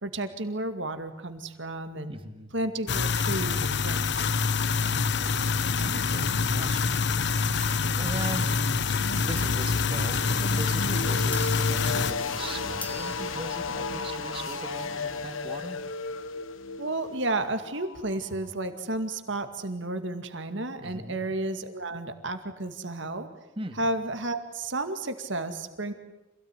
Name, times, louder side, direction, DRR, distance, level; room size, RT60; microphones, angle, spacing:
voice 1, 0.0-2.1 2.5-4.3 16.8-23.3 23.8-25.9, right 2 dB, 65° right, 8 dB, 2.2 m, -32 dB
voice 2, 2.1-2.5 4.8-8.8 9.1-15.8 20.8-21.2 23.6-23.8, right 1 dB, 25° right, 7 dB, 2.1 m, -40 dB
sound 1, 2.9-12.1, left 5 dB, 60° left, 0.9 m, -26 dB
sound 2, 5.6-18.5, left 3 dB, 80° left, 1.2 m, -35 dB
sound 3, 7.6-7.9 9.4-10.0 10.8-10.9 11.3-11.8 12.2-12.3 12.6-13.4, left 2 dB, 5° left, 2.1 m, -42 dB
26.5 x 17.0 x 10.0 m, 1.0 s
head